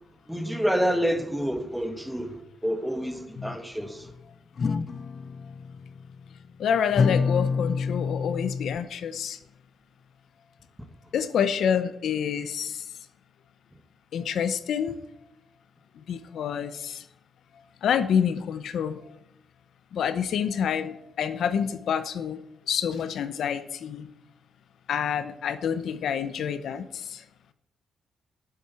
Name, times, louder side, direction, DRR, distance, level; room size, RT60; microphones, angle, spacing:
voice 1, 0.3-2.4 2.6-4.1, equal, ahead, 1.4 m, -28 dB
sound 1, 3.4-4.2 4.6-6.4 6.8-8.8, left 5 dB, 40° left, 0.6 m, -28 dB
voice 2, 6.6-9.4 11.1-12.8 14.1-15.0 16.1-17.0 17.8-19.0 19.9-22.4 22.7-24.1 24.9-27.2, left 8 dB, 65° left, 0.8 m, -27 dB
9.9 x 7.5 x 8.3 m
cardioid pair, 140°, 0 cm